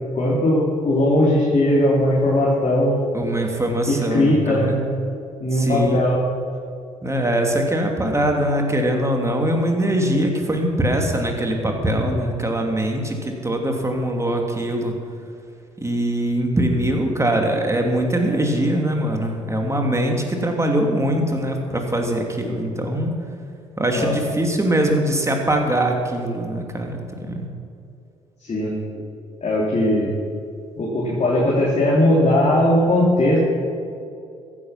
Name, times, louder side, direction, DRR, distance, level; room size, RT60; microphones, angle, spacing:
voice 1, 0.1-3.0 3.9-4.8 5.4-6.2 23.9-24.1 28.4-29.0 29.4-30.1 30.8-33.4, left 1 dB, 40° left, -6 dB, 3.4 m, -19 dB
voice 2, 3.1-4.7 5.5-5.9 7.0-14.9 15.8-23.1 23.8-27.5, right 1 dB, 15° right, 2 dB, 2.9 m, -22 dB
14.5 x 11.0 x 5.9 m, 2.5 s
hypercardioid pair, 50°, 17 cm